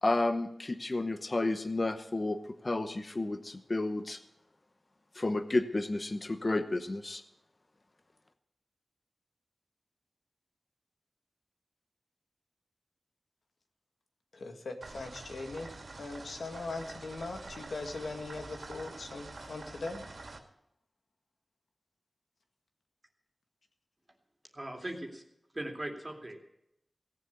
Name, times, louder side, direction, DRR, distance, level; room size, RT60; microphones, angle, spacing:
voice 1, 0.0-4.2 5.1-7.2, left 2 dB, 40° left, 10 dB, 0.9 m, -31 dB
voice 2, 14.3-15.7 16.0-20.0, left 3 dB, 90° left, 5 dB, 1.9 m, -40 dB
sound 1, 14.8-20.4, right 3 dB, 70° right, 2.3 m, -47 dB
voice 3, 24.5-25.2 25.5-26.4, right 1 dB, 25° right, 2 dB, 2.6 m, -39 dB
17.0 x 7.6 x 8.6 m, 0.80 s
wide cardioid pair, 65°, 0 cm